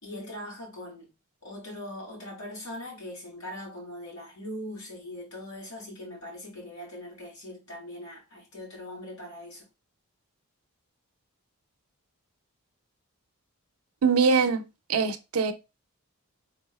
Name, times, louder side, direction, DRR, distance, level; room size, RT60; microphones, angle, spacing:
voice 1, 0.0-1.1 1.4-9.6, left 1 dB, 70° left, 2.7 m, -41 dB
voice 2, 14.0-14.6 14.9-15.5, right 5 dB, 80° right, 0.6 m, -22 dB
4.7 x 3.6 x 2.3 m
head